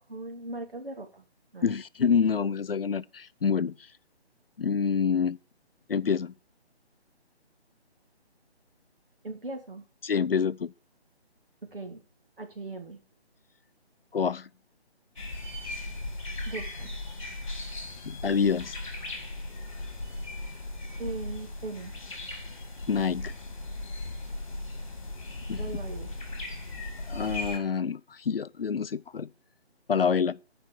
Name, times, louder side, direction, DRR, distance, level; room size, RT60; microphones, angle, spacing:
voice 1, 0.1-1.3 1.5-1.7 9.2-9.8 11.6-12.0 12.4-13.0 16.5-16.9 21.0-21.9 25.6-26.1, right 2 dB, 55° right, 2.7 m, -39 dB
voice 2, 1.6-3.8 4.6-5.4 5.9-6.3 10.0-10.7 14.1-14.5 18.0-18.7 22.9-23.3 25.5-25.6 27.1-29.3 29.9-30.4, left 6 dB, 60° left, 0.5 m, -27 dB
sound 1, 15.2-27.6, left 2 dB, 30° left, 2.0 m, -37 dB
10.5 x 5.2 x 7.5 m
hypercardioid pair, 180°, 33 cm